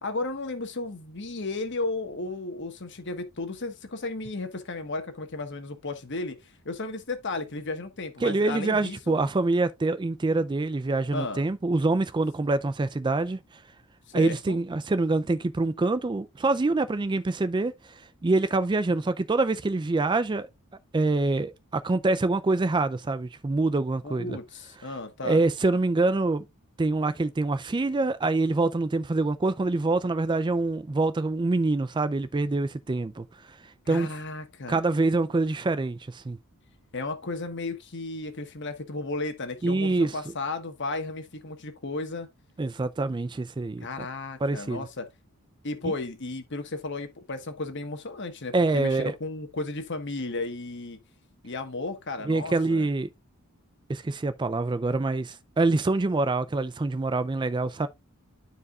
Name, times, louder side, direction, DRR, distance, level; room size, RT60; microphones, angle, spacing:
voice 1, 0.0-9.2 11.1-11.5 14.1-14.6 24.0-25.4 33.8-34.8 36.9-42.3 43.8-45.1 45.6-51.0 51.4-52.9, left 3 dB, 55° left, 1.4 m, -34 dB
voice 2, 8.2-13.4 14.1-17.7 18.2-20.5 20.9-24.4 25.2-26.4 26.8-33.3 33.9-34.1 34.7-36.4 39.6-40.1 42.6-43.9 44.4-44.9 48.5-49.1 52.3-53.1 53.9-57.9, right 3 dB, 20° right, 0.3 m, -25 dB
12.5 x 4.8 x 2.4 m
head